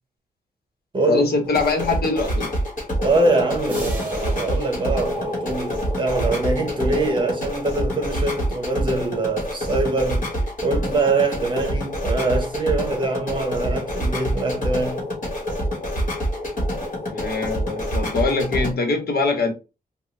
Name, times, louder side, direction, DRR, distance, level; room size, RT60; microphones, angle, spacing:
voice 1, 1.1-2.5 17.1-19.5, left 3 dB, 80° left, 1.1 m, -23 dB
sound 1, 1.4-18.7, equal, 55° left, 1.5 m, -26 dB
voice 2, 3.0-15.0, right 2 dB, 30° right, 0.8 m, -23 dB
sound 2, 3.7-6.2, right 2 dB, 10° right, 1.6 m, -40 dB
3.6 x 2.3 x 3.2 m
wide cardioid pair, 175°, 16 cm